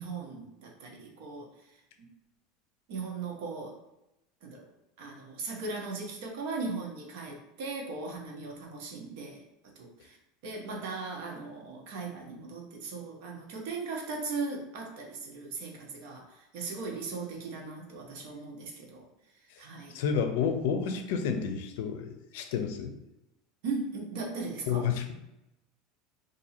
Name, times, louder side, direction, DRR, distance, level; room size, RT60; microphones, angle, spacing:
voice 1, 0.0-1.5 2.0-2.1 2.9-3.8 4.4-4.7 5.0-9.4 9.8-10.2 10.4-19.0 19.6-19.9 23.6-24.8, right 4 dB, 65° right, 0 dB, 0.9 m, -38 dB
voice 2, 19.9-22.9 24.7-25.1, left 6 dB, 75° left, 7 dB, 0.5 m, -30 dB
2.8 x 2.6 x 4.2 m, 0.90 s
supercardioid pair, 155°, 0 cm